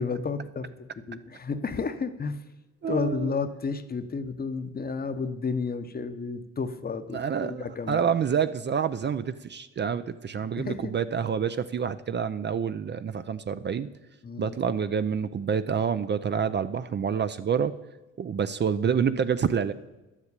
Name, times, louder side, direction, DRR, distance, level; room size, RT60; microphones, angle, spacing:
voice 1, 0.0-2.4 2.9-8.0 10.6-10.9 14.2-14.6, left 4 dB, 30° left, 10 dB, 0.9 m, -32 dB
voice 2, 2.8-3.3 7.1-13.9 14.4-17.7 18.2-19.7, right 7 dB, 35° right, 12 dB, 0.5 m, -27 dB
11.0 x 7.4 x 8.2 m, 1.1 s
cardioid pair, 90°, 30 cm